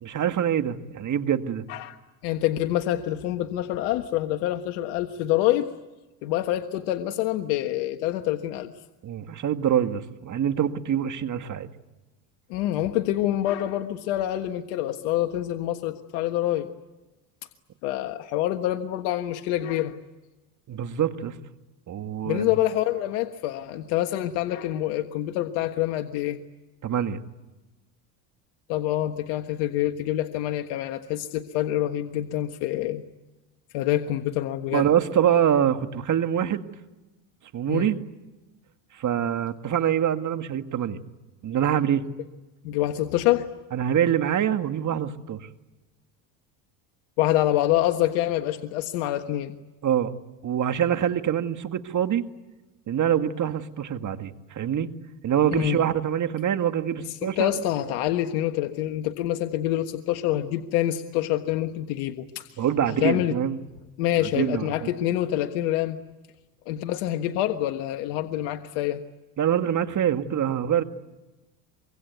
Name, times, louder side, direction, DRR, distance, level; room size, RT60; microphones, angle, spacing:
voice 1, 0.0-1.6 9.0-11.7 20.7-21.4 21.9-22.5 26.8-27.2 34.7-36.7 37.5-38.0 38.9-41.0 41.4-42.1 43.7-45.5 49.8-50.2 50.4-52.2 52.9-54.9 55.2-57.5 62.6-63.6 64.2-64.9 69.4-70.8, right 9 dB, 40° right, 8 dB, 1.9 m, -25 dB
voice 2, 2.2-5.7 6.2-8.7 12.5-16.7 17.8-19.9 22.3-26.4 28.7-33.0 33.7-34.9 37.7-37.9 42.6-43.5 47.2-49.6 55.5-55.8 57.2-62.6 63.0-63.3 64.0-66.0 66.7-69.0, left 13 dB, 75° left, 7 dB, 1.5 m, -26 dB
25.0 x 23.5 x 9.4 m, 1.1 s
supercardioid pair, 95°, 46 cm